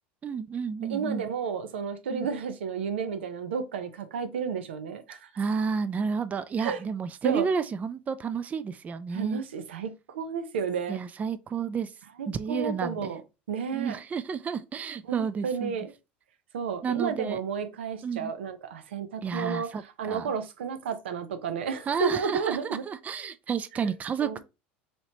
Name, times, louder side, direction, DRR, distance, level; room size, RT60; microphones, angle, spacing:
voice 1, 0.2-1.2 2.1-2.3 5.4-9.4 10.9-11.9 12.3-13.1 13.7-15.8 16.8-17.4 18.0-18.3 19.2-19.8 20.1-20.3 21.9-24.5, right 6 dB, 25° right, 0.3 m, -31 dB
voice 2, 0.9-5.3 6.6-6.8 7.2-7.5 9.1-11.0 12.2-13.2 13.5-14.0 15.1-15.9 16.5-22.8 23.7-23.9 24.2-24.4, right 6 dB, 85° right, 0.5 m, -32 dB
3.1 x 2.9 x 2.7 m
hypercardioid pair, 90°, 6 cm